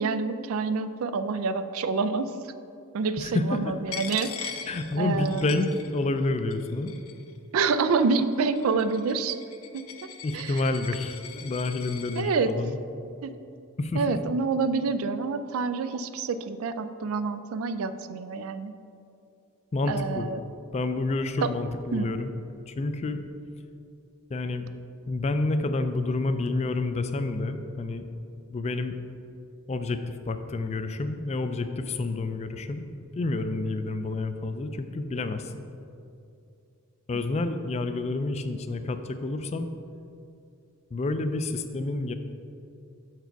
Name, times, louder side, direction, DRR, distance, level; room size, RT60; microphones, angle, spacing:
voice 1, 0.0-2.3 2.9-5.6 7.5-9.4 9.7-9.9 10.3-10.6 12.2-12.5 13.2-13.4 13.9-18.7 19.9-20.4 21.4-21.5 21.9-22.1, right 4 dB, 85° right, 11 dB, 0.4 m, -27 dB
voice 2, 3.2-3.7 4.7-6.9 10.2-12.8 13.8-14.2 19.7-20.3 20.7-22.3 22.7-23.2 24.3-24.7 25.1-28.0 28.5-29.0 29.7-32.8 33.1-35.6 37.1-39.7 40.9-42.1, left 2 dB, 30° left, 9 dB, 0.3 m, -29 dB
Coin (dropping), 3.9-6.2 6.5-7.3 8.0-12.2, left 8 dB, 90° left, 0.5 m, -41 dB
6.7 x 4.7 x 4.5 m, 2.6 s
head